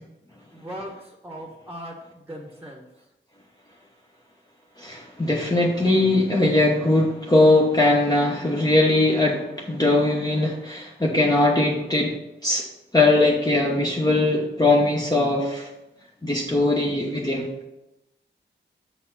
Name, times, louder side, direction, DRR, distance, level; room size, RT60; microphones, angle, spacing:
voice 1, 0.5-2.8, equal, 10° right, 1 dB, 1.1 m, -38 dB
voice 2, 4.8-12.2 12.4-12.7 12.9-15.7 16.2-17.5, left 2 dB, 20° left, -2 dB, 1.0 m, -20 dB
6.7 x 4.1 x 5.8 m, 0.92 s
cardioid pair, 65°, 20 cm